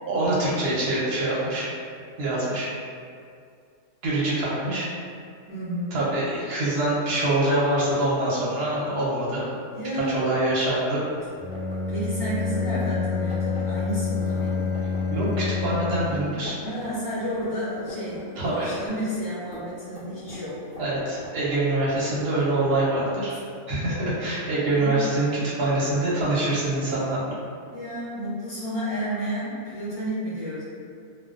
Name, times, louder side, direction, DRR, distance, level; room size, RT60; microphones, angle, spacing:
voice 1, 0.1-1.7 2.2-2.7 4.0-4.9 5.9-9.5 9.9-11.0 15.1-16.6 18.4-18.7 20.8-23.4 23.7-27.4, right 1 dB, 55° right, -7 dB, 0.8 m, -25 dB
voice 2, 5.5-6.0 9.7-10.5 11.9-14.7 16.6-20.6 24.8-25.0 27.7-30.6, equal, 25° right, -13 dB, 0.4 m, -31 dB
sound 1, 11.2-15.8 16.1-16.2 16.4-18.2 18.5-23.2, equal, 10° left, 0.8 m, -44 dB
Bowed string instrument, 11.3-16.4, left 4 dB, 65° left, 0.8 m, -27 dB
sound 2, 13.9-18.9, left 1 dB, 90° right, 1.1 m, -45 dB
2.3 x 2.2 x 2.4 m, 2.3 s
omnidirectional pair, 1.6 m